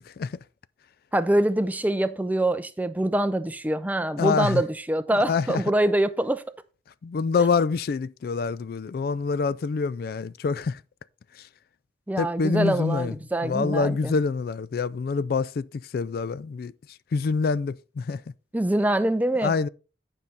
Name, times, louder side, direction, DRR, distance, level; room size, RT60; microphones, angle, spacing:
voice 1, 1.1-6.4 12.1-14.2 18.5-19.6, right 1 dB, 10° right, 0.4 m, -24 dB
voice 2, 4.2-4.6 5.3-5.6 7.0-10.8 12.2-13.1 13.4-15.7 15.9-16.7 17.1-18.2 19.4-19.7, left 4 dB, 55° left, 0.3 m, -26 dB
9.7 x 5.3 x 4.2 m
head